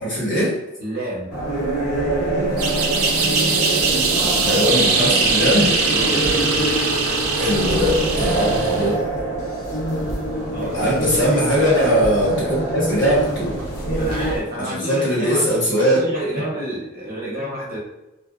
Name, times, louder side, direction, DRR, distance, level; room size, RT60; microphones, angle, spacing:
voice 1, 0.0-0.6 4.4-5.8 7.3-9.0 10.6-13.5 14.6-16.0 16.3-16.4, equal, 55° left, -6 dB, 1.1 m, -20 dB
voice 2, 0.8-1.3 5.9-6.2 10.5-10.9 14.0-17.8, right 1 dB, 45° right, -5 dB, 0.8 m, -29 dB
sound 1, 1.3-14.4, right 1 dB, 80° left, 0.9 m, -25 dB
sound 2, 2.6-8.9, right 4 dB, 85° right, 0.5 m, -21 dB
sound 3, 5.2-12.5, left 1 dB, 35° left, 0.3 m, -37 dB
2.6 x 2.2 x 2.3 m, 0.96 s
head